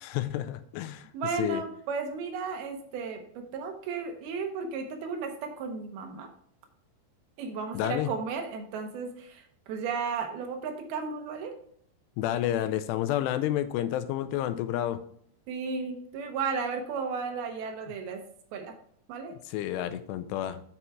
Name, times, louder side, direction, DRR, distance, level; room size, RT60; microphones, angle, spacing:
voice 1, 0.0-1.1 1.4-1.6 7.7-8.1 12.2-15.0 19.5-20.6, left 12 dB, 85° left, 11 dB, 2.7 m, -30 dB
voice 2, 1.1-6.3 7.4-11.5 15.5-18.2 18.5-18.7 19.1-19.3 19.8-19.9, right 5 dB, 75° right, 5 dB, 2.6 m, -34 dB
7.9 x 5.7 x 4.6 m, 0.66 s
omnidirectional pair, 4.8 m